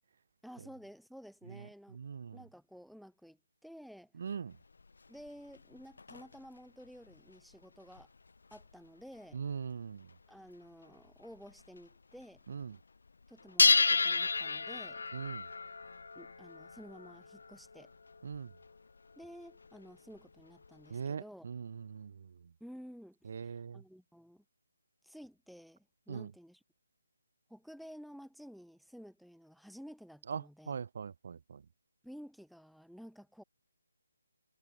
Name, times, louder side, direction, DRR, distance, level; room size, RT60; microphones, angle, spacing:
voice 1, 0.4-2.0 2.3-4.1 5.1-8.1 8.5-9.4 10.3-12.4 13.3-15.0 16.2-17.9 19.2-21.5 22.6-24.4 25.0-26.6 27.5-30.8 32.0-33.4, equal, ahead, 5.2 m, -52 dB
voice 2, 1.9-2.4 4.2-4.6 9.3-10.1 12.5-12.8 15.1-15.5 18.2-18.5 20.9-22.3 23.3-23.8 26.1-26.3 30.3-31.6, right 6 dB, 30° right, 2.6 m, -41 dB
sound 1, 4.5-6.5 7.0-8.7 9.3-9.7 10.1-10.2 10.5-10.6 10.8-11.9 12.2-12.8 13.1-21.0, left 4 dB, 55° left, 6.8 m, -33 dB
hypercardioid pair, 180°, 0 cm